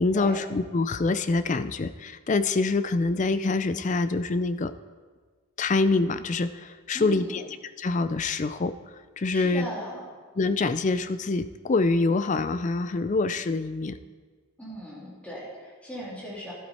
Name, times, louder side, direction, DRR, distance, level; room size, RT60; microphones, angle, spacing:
voice 1, 0.0-4.7 5.6-7.5 7.8-8.7 9.2-9.7 10.4-14.0, left 3 dB, 35° left, 12 dB, 0.4 m, -25 dB
voice 2, 6.9-7.4 9.3-10.0 14.6-16.5, equal, 5° left, -6 dB, 3.0 m, -38 dB
12.0 x 11.5 x 4.3 m, 1.5 s
head